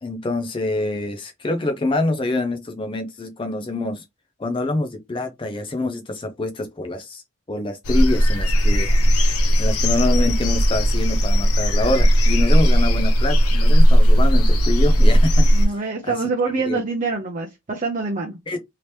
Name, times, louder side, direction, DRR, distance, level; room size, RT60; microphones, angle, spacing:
voice 1, 0.0-4.0 4.4-7.2 7.5-8.9 9.6-16.2 16.7-16.8 18.5-18.6, left 2 dB, 20° left, 0.4 m, -26 dB
sound 1, 7.8-15.7, equal, 85° left, 0.7 m, -16 dB
voice 2, 15.5-18.4, right 3 dB, 35° right, 0.5 m, -25 dB
2.9 x 2.9 x 3.1 m
head